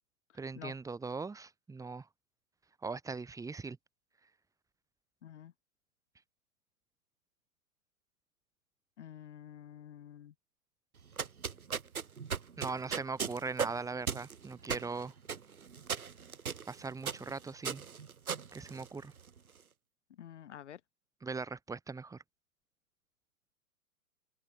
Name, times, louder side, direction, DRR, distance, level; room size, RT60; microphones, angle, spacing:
voice 1, 0.3-2.1 2.8-3.8 12.6-15.1 16.7-17.8 18.5-19.1 21.2-22.2, right 4 dB, 5° right, 6.4 m, -40 dB
voice 2, 5.2-5.5 9.0-10.3 20.2-20.8, left 10 dB, 50° left, 2.1 m, -49 dB
sound 1, 11.0-19.4, right 6 dB, 70° right, 1.9 m, -38 dB
open air
figure-of-eight pair, 115°, 45 cm